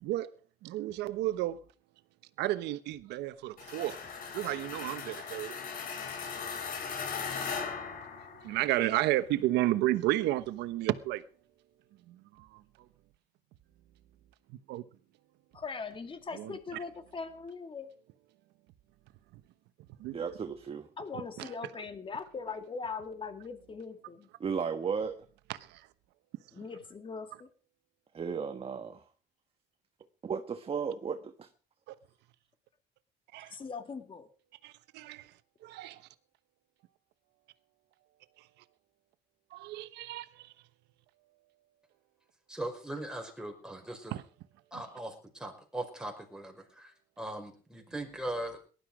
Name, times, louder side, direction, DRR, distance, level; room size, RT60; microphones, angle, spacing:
voice 1, 0.6-1.6 2.4-4.0 4.3-5.5 8.4-11.2 12.1-12.6 14.7-14.8 16.3-16.5 20.0-20.2 21.1-21.5 25.7-25.8 31.9-32.0 33.3-33.5 34.6-35.3 35.6-36.0 39.5-40.5 44.1-44.2, right 15 dB, 85° right, 1.1 m, -32 dB
sound 1, 3.6-8.8, left 6 dB, 55° left, 3.6 m, -38 dB
voice 2, 15.5-17.9 21.0-24.3 26.5-27.5 33.5-34.3, left 5 dB, 30° left, 2.3 m, -40 dB
voice 3, 20.1-20.9 24.4-25.2 28.1-29.0 30.2-31.5, right 6 dB, 35° right, 1.4 m, -34 dB
voice 4, 42.5-44.2 44.7-48.6, right 1 dB, 5° right, 5.5 m, -40 dB
19.0 x 12.0 x 5.0 m
cardioid pair, 110°, 17 cm